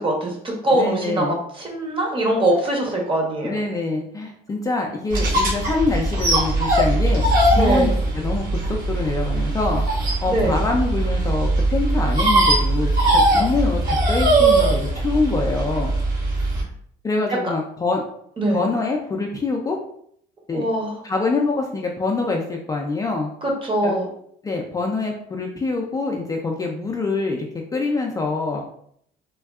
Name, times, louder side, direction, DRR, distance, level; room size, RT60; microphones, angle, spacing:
voice 1, 0.0-3.6 7.5-7.9 10.3-10.5 17.4-17.5 18.4-18.6 20.5-21.0 23.4-24.1, right 1 dB, 30° right, 0 dB, 0.9 m, -22 dB
voice 2, 0.7-1.4 3.4-7.3 7.6-9.8 10.2-15.9 17.0-18.0 18.5-19.8 20.5-20.7 21.0-23.3 23.8-24.0 24.4-27.5 27.7-28.6, left 3 dB, 20° left, 0 dB, 0.3 m, -25 dB
sound 1, 5.1-16.6, right 2 dB, 60° right, 1.4 m, -20 dB
3.4 x 2.2 x 2.3 m, 0.66 s
cardioid pair, 110°, 17 cm